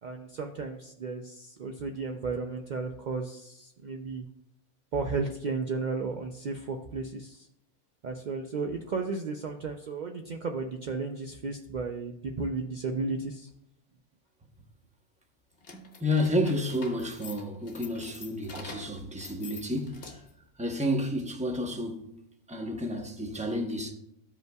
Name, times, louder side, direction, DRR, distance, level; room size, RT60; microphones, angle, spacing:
voice 1, 0.0-4.3 4.9-7.5 8.0-13.5, right 4 dB, 65° right, 0.4 m, -34 dB
sound 1, 15.6-20.4, left 4 dB, 50° left, 1.1 m, -46 dB
voice 2, 15.7-20.2 20.6-22.1 22.5-23.9, left 1 dB, 5° right, 0.7 m, -31 dB
14.0 x 5.3 x 2.3 m
omnidirectional pair, 1.4 m